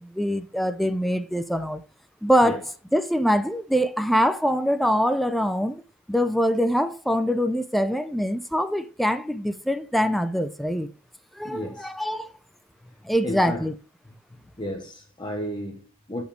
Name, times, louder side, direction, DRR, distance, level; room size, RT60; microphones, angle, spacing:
voice 1, 0.0-1.8 2.2-2.6 2.9-5.8 6.1-10.9 11.4-12.3 13.0-13.7, equal, ahead, 0.6 m, -24 dB
voice 2, 11.4-11.9 13.2-13.7 14.6-16.2, left 1 dB, 25° left, 1.1 m, -33 dB
11.0 x 5.2 x 3.3 m
head